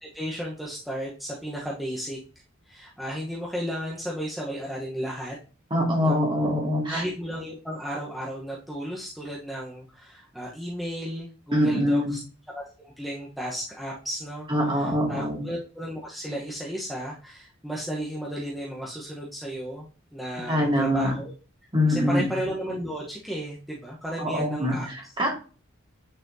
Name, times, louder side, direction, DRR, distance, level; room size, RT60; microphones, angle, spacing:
voice 1, 0.0-2.2 2.7-5.4 6.0-6.2 6.9-12.2 12.5-21.3 21.9-25.1, equal, ahead, -5 dB, 1.0 m, -34 dB
voice 2, 5.7-7.0 11.5-12.1 14.5-15.4 20.5-21.1 21.7-22.3 24.2-25.3, equal, 25° right, -1 dB, 2.1 m, -24 dB
9.0 x 4.2 x 2.7 m, 0.36 s
head